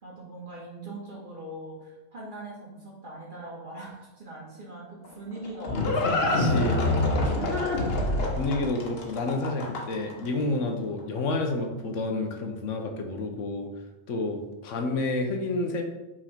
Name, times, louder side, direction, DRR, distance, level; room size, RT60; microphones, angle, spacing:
voice 1, 0.0-8.0, right 1 dB, 40° right, -5 dB, 2.1 m, -41 dB
Livestock farm animals working animals, 5.0-10.1, left 2 dB, 55° left, 1.2 m, -26 dB
voice 2, 6.2-6.8 8.4-13.7 14.1-15.8, left 2 dB, 85° left, 4 dB, 1.2 m, -29 dB
6.1 x 3.8 x 4.5 m, 1.0 s
omnidirectional pair, 1.3 m